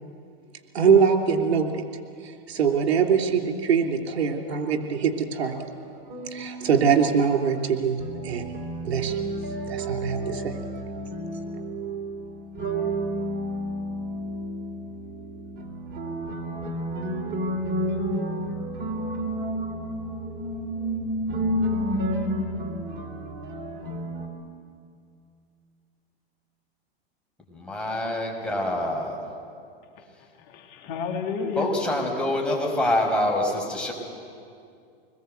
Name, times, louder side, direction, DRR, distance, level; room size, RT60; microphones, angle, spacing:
voice 1, 0.7-1.8 2.2-5.6 6.3-8.5 8.8-9.2 9.7-10.6, right 6 dB, 80° right, 3 dB, 3.2 m, -23 dB
sound 1, 5.5-6.9 8.0-24.3, right 1 dB, 35° right, 3.5 m, -31 dB
voice 2, 27.5-29.2 31.6-33.9, left 1 dB, 5° left, -2 dB, 6.0 m, -26 dB
voice 3, 30.5-31.7, left 5 dB, 50° left, 3 dB, 2.7 m, -30 dB
26.5 x 21.0 x 8.1 m, 2.4 s
hypercardioid pair, 110°, 31 cm